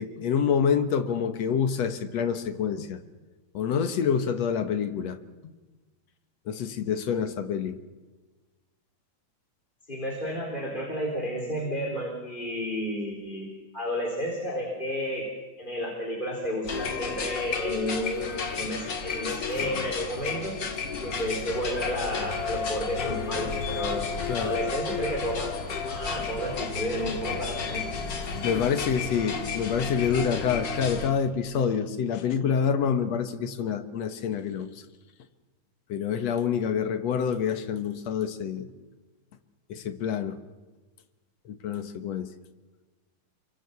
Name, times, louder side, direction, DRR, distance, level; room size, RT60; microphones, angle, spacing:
voice 1, 0.0-3.0 3.5-5.2 5.4-5.5 6.5-7.8 24.3-24.6 27.3-27.4 28.4-34.7 35.9-38.7 39.7-40.4 41.5-42.3, left 7 dB, 60° left, 2.1 m, -27 dB
voice 2, 9.9-13.5 13.7-15.3 15.6-20.5 21.0-24.0 24.4-27.9, equal, 15° left, 3.9 m, -32 dB
sound 1, 16.6-31.1, left 5 dB, 35° left, 2.3 m, -32 dB
29.5 x 23.5 x 7.0 m
omnidirectional pair, 4.1 m